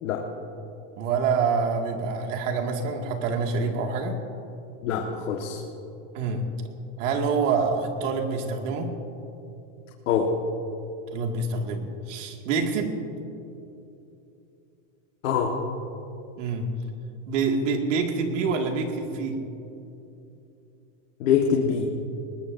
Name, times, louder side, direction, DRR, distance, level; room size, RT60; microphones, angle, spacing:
voice 1, 1.0-4.2 6.1-6.4 7.0-8.9 11.1-12.9 16.4-16.7 17.3-19.4, right 4 dB, 75° right, 2 dB, 2.2 m, -26 dB
voice 2, 4.8-5.6 10.1-10.3 15.2-15.6 21.2-21.9, left 7 dB, 85° left, 1 dB, 1.6 m, -24 dB
21.5 x 19.5 x 2.7 m, 2.8 s
supercardioid pair, 165°, 38 cm